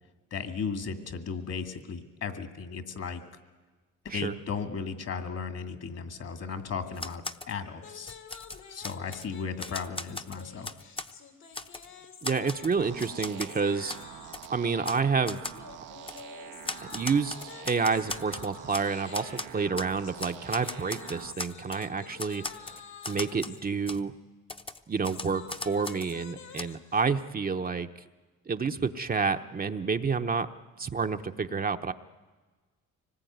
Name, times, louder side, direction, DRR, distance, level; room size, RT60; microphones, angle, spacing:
voice 1, 0.3-3.2 4.0-8.2 8.7-10.7, left 5 dB, 55° left, 8 dB, 2.3 m, -35 dB
Typewriter, 6.9-7.5 7.9-9.3 9.6-11.1 11.5-11.9 12.2-13.5 13.9-14.0 14.3-14.5 14.8-15.0 15.3-15.6 16.1-16.2 16.6-18.9 19.1-19.9 20.2-21.9 22.2-23.6 23.9-24.0 24.5-26.1 26.6-26.7, left 2 dB, 20° left, 0.9 m, -38 dB
sound 1, 7.8-14.5 15.5-23.6 24.8-27.0, left 7 dB, 75° left, 3.1 m, -49 dB
voice 2, 12.2-14.0 14.5-15.4 16.9-17.3 17.6-22.8 23.1-24.1 24.9-27.9 28.5-30.5 30.8-31.9, right 5 dB, 30° right, 6 dB, 0.9 m, -29 dB
sound 2, 12.8-21.3, right 11 dB, 85° right, 1.1 m, -46 dB
24.5 x 19.5 x 9.4 m, 1.3 s
cardioid pair, 90°, 30 cm